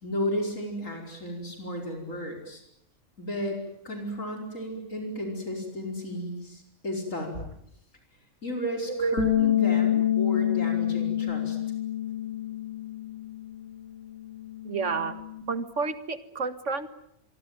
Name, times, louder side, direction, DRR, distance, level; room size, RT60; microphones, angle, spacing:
voice 1, 0.0-2.6 3.2-3.6 3.8-7.5 8.4-11.6, left 1 dB, 80° left, 2 dB, 5.4 m, -33 dB
Bass guitar, 9.2-15.4, left 10 dB, 60° left, 3.3 m, -28 dB
voice 2, 14.6-15.2 15.5-16.9, right 4 dB, 65° right, 12 dB, 2.1 m, -29 dB
27.5 x 23.5 x 9.3 m, 0.75 s
omnidirectional pair, 1.3 m